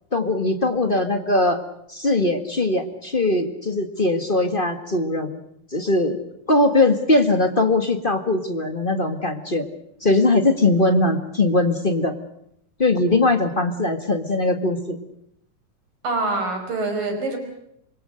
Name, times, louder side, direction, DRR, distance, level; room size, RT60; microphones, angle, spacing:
voice 1, 0.1-1.6 1.9-5.4 5.7-6.2 6.5-9.7 10.0-12.2 12.8-15.0, left 2 dB, 30° left, 7 dB, 0.9 m, -20 dB
voice 2, 16.0-17.4, right 2 dB, 75° right, 6 dB, 6.7 m, -25 dB
26.5 x 23.5 x 6.4 m, 0.75 s
omnidirectional pair, 3.9 m